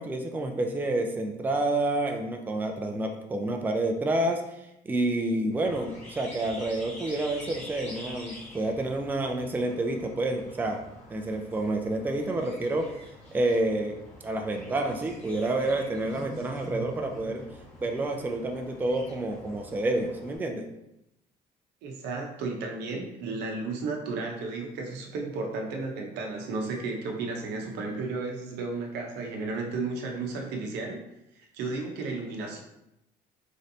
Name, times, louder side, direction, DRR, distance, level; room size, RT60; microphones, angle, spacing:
voice 1, 0.0-4.4 4.9-10.8 11.1-12.9 13.3-14.0 14.2-17.5 17.8-20.6, right 2 dB, 10° right, 2 dB, 0.4 m, -29 dB
sound 1, 5.5-20.4, left 1 dB, 40° left, 1.2 m, -47 dB
voice 2, 21.8-31.0 31.5-32.6, right 3 dB, 85° right, 1 dB, 0.7 m, -33 dB
3.2 x 2.6 x 2.7 m, 0.86 s
cardioid pair, 110°, 17 cm